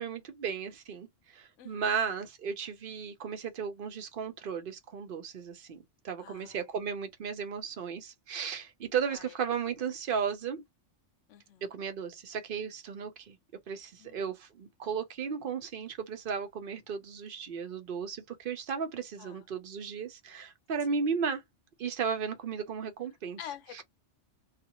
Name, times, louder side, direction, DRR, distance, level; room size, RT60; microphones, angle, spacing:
voice 1, 0.0-10.6 11.6-13.4 13.7-21.4 21.8-23.4, right 6 dB, 55° right, 0.8 m, -35 dB
voice 2, 1.6-2.0 6.2-6.6 9.1-9.3 11.3-11.7 14.0-14.3 19.2-19.4 23.4-23.8, left 10 dB, 85° left, 1.0 m, -47 dB
2.5 x 2.4 x 2.9 m
omnidirectional pair, 1.2 m